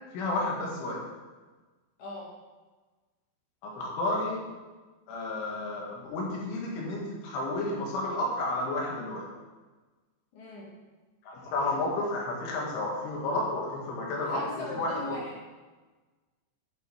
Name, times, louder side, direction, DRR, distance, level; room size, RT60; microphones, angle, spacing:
voice 1, 0.1-1.1 3.6-4.4 5.1-9.3 11.2-15.2, left 2 dB, 90° left, -3 dB, 4.5 m, -31 dB
voice 2, 2.0-2.3 10.3-10.7 14.2-15.4, left 2 dB, 50° left, -5 dB, 2.7 m, -39 dB
11.0 x 7.0 x 4.6 m, 1.3 s
omnidirectional pair, 5.4 m